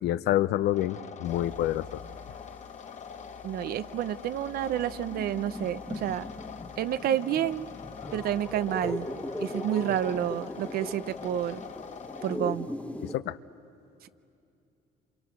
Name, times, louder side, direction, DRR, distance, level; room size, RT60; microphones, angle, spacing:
voice 1, 0.0-2.0 13.0-13.4, left 13 dB, 75° left, 15 dB, 0.6 m, -27 dB
sound 1, 0.7-12.4, left 7 dB, 45° left, 1.0 m, -44 dB
sound 2, 1.3-2.8 3.1-13.2, left 2 dB, 10° left, 1.2 m, -40 dB
voice 2, 3.4-6.3 6.8-7.7 8.1-9.1 9.4-11.6 12.2-12.7 14.0-14.1, right 11 dB, 65° right, 15 dB, 0.7 m, -29 dB
27.5 x 27.5 x 6.2 m, 2.7 s
cardioid pair, 110°, 17 cm